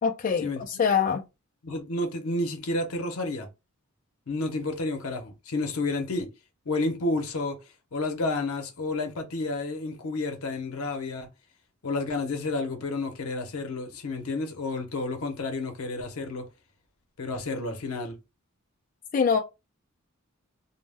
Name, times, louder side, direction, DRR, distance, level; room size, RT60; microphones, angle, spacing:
voice 1, 0.0-1.2 19.1-19.4, left 6 dB, 40° left, 0.3 m, -24 dB
voice 2, 1.6-3.5 4.3-6.3 6.7-7.6 7.9-11.3 11.8-16.5 17.2-18.2, left 2 dB, 85° left, 0.6 m, -30 dB
2.1 x 2.1 x 3.3 m
head